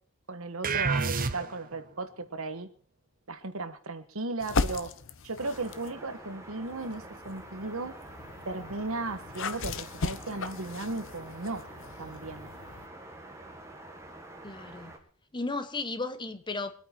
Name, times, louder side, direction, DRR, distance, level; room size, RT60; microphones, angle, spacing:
voice 1, 0.3-2.7 3.3-4.9 5.2-8.0 8.4-11.7 12.0-12.5, right 3 dB, 70° right, 1.4 m, -36 dB
sound 1, 0.6-1.8, right 4 dB, 40° right, 0.8 m, -28 dB
sound 2, 4.4-6.0 6.7-12.9, left 4 dB, 60° left, 0.8 m, -37 dB
sound 3, 5.4-15.0, right 1 dB, 15° right, 1.9 m, -47 dB
voice 2, 14.4-14.9 15.3-16.7, left 3 dB, 20° left, 1.0 m, -34 dB
23.0 x 9.0 x 4.5 m
head